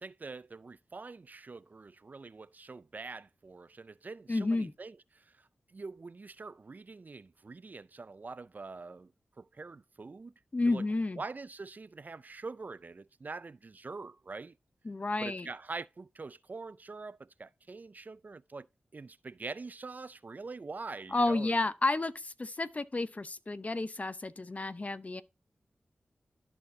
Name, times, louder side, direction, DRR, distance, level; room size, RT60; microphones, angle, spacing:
voice 1, 0.0-9.1 9.4-10.3 10.7-10.8 11.2-14.5 15.2-18.7 18.9-21.6, right 3 dB, 50° right, 0.4 m, -44 dB
voice 2, 4.3-4.7 10.5-11.2 14.8-15.5 21.1-25.2, left 2 dB, 40° left, 0.8 m, -31 dB
12.5 x 4.4 x 2.7 m
cardioid pair, 40°, 4 cm